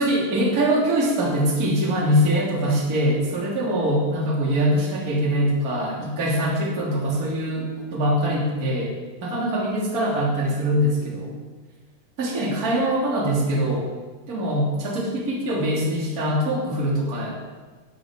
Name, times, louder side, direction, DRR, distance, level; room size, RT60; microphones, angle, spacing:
voice 1, 0.0-11.3 12.2-13.9 14.3-17.4, equal, 25° right, -2 dB, 3.1 m, -23 dB
13.5 x 8.0 x 8.8 m, 1.3 s
omnidirectional pair, 3.7 m